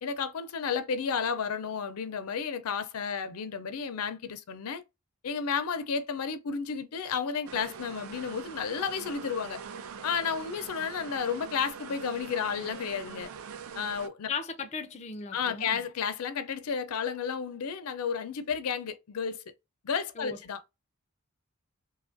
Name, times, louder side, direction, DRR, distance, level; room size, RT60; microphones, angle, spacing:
voice 1, 0.0-4.8 5.2-9.6 10.0-13.3 13.7-14.3 15.3-19.4 19.8-20.6, left 6 dB, 90° left, 0.5 m, -32 dB
sound 1, 7.5-14.1, right 6 dB, 70° right, 0.4 m, -43 dB
voice 2, 14.3-15.8 20.2-20.4, left 5 dB, 30° left, 0.3 m, -37 dB
2.9 x 2.3 x 2.5 m
head